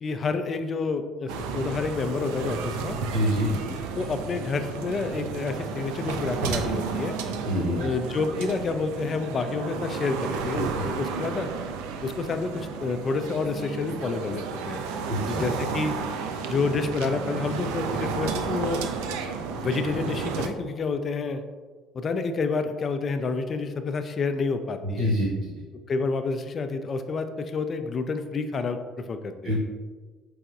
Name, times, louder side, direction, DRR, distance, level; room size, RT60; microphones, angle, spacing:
voice 1, 0.0-3.0 3.9-7.2 7.8-11.5 12.0-14.8 15.3-16.0 16.5-18.8 19.5-21.4 21.9-25.1 25.7-29.6, left 4 dB, 40° left, 8 dB, 0.3 m, -29 dB
sound 1, 1.3-20.5, right 5 dB, 65° right, 0.3 m, -32 dB
voice 2, 3.1-3.5 7.4-7.8 15.1-15.4 25.0-25.5 29.4-29.6, equal, 50° right, -4 dB, 0.9 m, -25 dB
4.6 x 3.3 x 2.4 m, 1.4 s
figure-of-eight pair, 55°, 0 cm